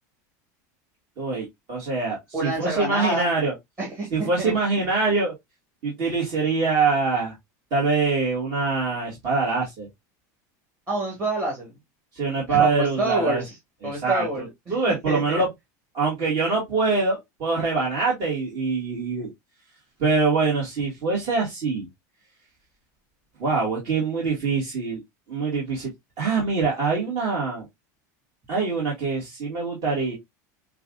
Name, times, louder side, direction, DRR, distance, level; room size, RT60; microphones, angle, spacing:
voice 1, 1.2-3.5 4.1-5.3 5.8-7.3 7.7-9.9 12.2-13.4 13.8-14.3 14.7-15.5 15.9-19.3 20.0-21.9 23.4-25.0 25.3-25.9 26.2-27.7 28.5-30.1, right 4 dB, 50° right, 1.8 m, -24 dB
voice 2, 2.3-3.3 3.8-4.5 10.9-11.7 12.5-13.5 13.8-14.7 15.1-15.4, right 1 dB, 30° right, 2.1 m, -27 dB
5.5 x 2.5 x 2.4 m
supercardioid pair, 130°, 9 cm